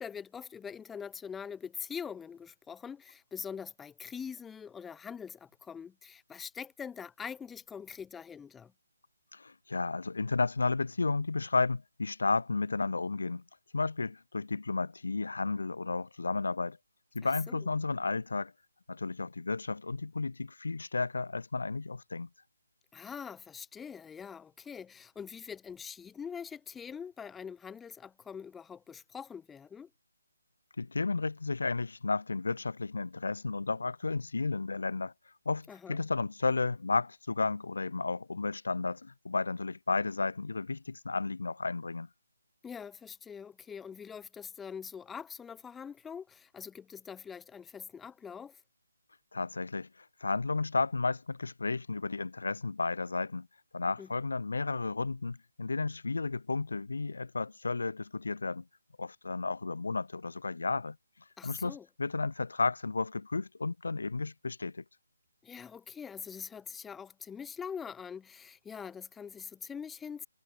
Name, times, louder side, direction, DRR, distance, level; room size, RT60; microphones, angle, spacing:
voice 1, 0.0-8.7 17.5-17.6 22.9-29.9 35.7-36.0 42.6-48.6 54.0-54.1 61.4-61.9 65.4-70.3, left 7 dB, 5° left, 1.0 m, -43 dB
voice 2, 9.3-13.4 13.7-16.8 17.1-18.5 18.9-22.3 30.8-35.1 35.4-42.1 49.3-49.9 50.2-53.5 53.7-58.6 59.0-61.0 61.4-64.8, left 3 dB, 75° left, 0.9 m, -33 dB
hypercardioid pair, 175°, 0 cm